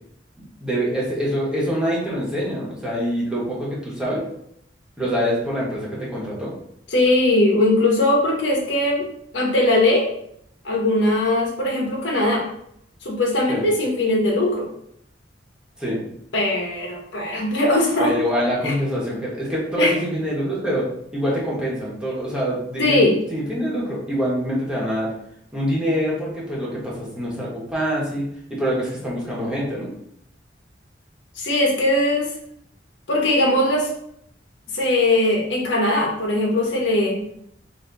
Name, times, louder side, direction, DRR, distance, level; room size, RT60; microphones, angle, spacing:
voice 1, 0.6-4.2 5.0-6.5 13.5-13.6 15.8-16.0 18.0-20.9 21.1-25.1 25.5-29.9, equal, 5° right, -6 dB, 1.3 m, -25 dB
voice 2, 6.9-9.1 9.3-10.1 10.6-12.4 13.0-14.7 16.3-18.1 18.6-18.7 19.8-19.9 22.8-23.2 31.4-32.3 33.1-33.9 34.7-37.2, left 1 dB, 85° left, -1 dB, 1.3 m, -20 dB
4.1 x 2.9 x 4.0 m, 0.72 s
head